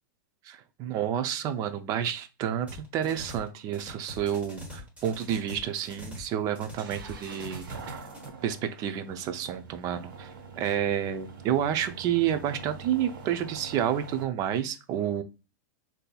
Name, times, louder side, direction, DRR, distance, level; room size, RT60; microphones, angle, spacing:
voice 1, 0.4-8.0 8.4-15.2, right 10 dB, 35° right, 10 dB, 0.4 m, -30 dB
sound 1, 2.7-3.5 3.7-6.3 6.6-8.3, left 1 dB, 15° right, 1.1 m, -43 dB
sound 2, 5.1-14.2, right 5 dB, 80° right, 0.7 m, -45 dB
3.8 x 2.7 x 2.2 m, 0.30 s
hypercardioid pair, 135°, 11 cm